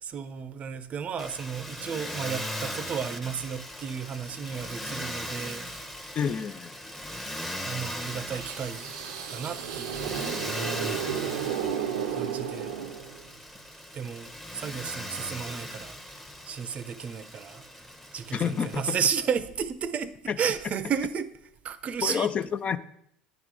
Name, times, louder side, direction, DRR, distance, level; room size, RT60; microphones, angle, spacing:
voice 1, 0.0-5.7 7.6-8.9 9.3-10.1 12.1-12.8 13.9-16.0 16.4-17.7 18.1-21.3 21.6-22.3, right 7 dB, 40° right, 0.5 m, -33 dB
Motor vehicle (road), 1.2-19.1, equal, 5° left, 0.8 m, -39 dB
voice 2, 6.1-6.8 18.3-19.0 20.3-20.4 22.0-22.8, left 7 dB, 40° left, 0.4 m, -28 dB
sound 1, 8.3-13.4, right 8 dB, 85° right, 0.5 m, -33 dB
9.2 x 3.7 x 4.7 m
hypercardioid pair, 80°, 3 cm